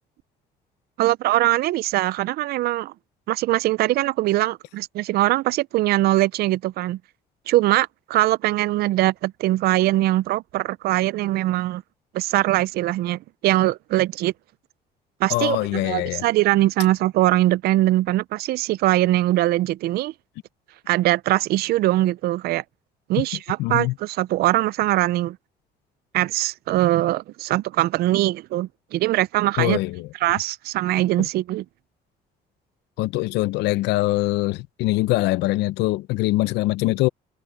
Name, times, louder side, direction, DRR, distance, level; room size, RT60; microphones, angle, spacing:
voice 1, 1.0-2.9 3.3-7.0 7.5-11.8 12.1-14.3 15.2-20.1 20.9-22.6 23.1-25.4 26.1-29.8 30.2-31.6, right 16 dB, 65° right, 0.4 m, -22 dB
voice 2, 15.3-16.2 23.2-23.3 23.6-23.9 29.6-30.1 31.2-31.3 33.0-37.1, left 18 dB, 90° left, 0.6 m, -23 dB
cardioid pair, 110°, 17 cm